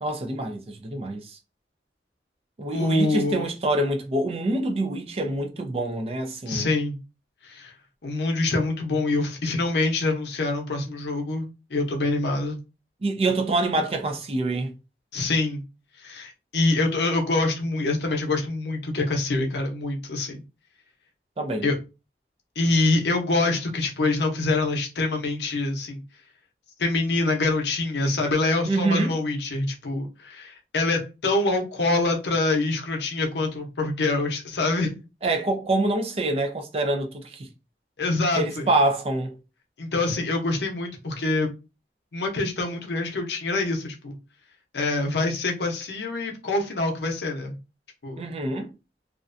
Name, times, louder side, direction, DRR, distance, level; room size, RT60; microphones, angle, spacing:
voice 1, 0.0-1.4 2.6-6.7 13.0-14.7 21.4-21.7 28.7-29.1 35.2-37.5 38.3-39.4 48.2-48.7, right 2 dB, 35° right, 0.4 m, -26 dB
voice 2, 2.7-3.5 6.5-7.0 7.4-7.7 8.0-12.6 15.1-15.6 16.0-20.4 21.6-21.8 22.6-26.0 26.8-35.0 38.0-38.7 39.8-41.5 42.1-44.2 44.7-47.6 48.0-48.2, left 2 dB, 80° left, 0.6 m, -25 dB
2.4 x 2.1 x 2.5 m
head